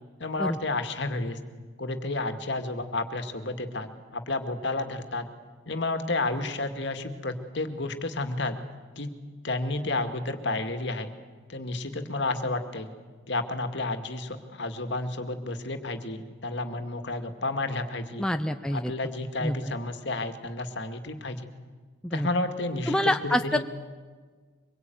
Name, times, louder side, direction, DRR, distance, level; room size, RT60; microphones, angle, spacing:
voice 1, 0.2-1.4 1.8-5.3 5.7-8.6 9.0-9.1 9.4-11.1 11.5-12.9 13.3-18.2 18.7-21.5 22.1-23.6, left 2 dB, 60° left, 7 dB, 2.2 m, -31 dB
voice 2, 18.2-18.9 19.4-19.5 22.0-22.3 22.9-23.7, left 1 dB, 5° left, 6 dB, 0.7 m, -26 dB
24.5 x 22.0 x 9.4 m, 1.5 s
head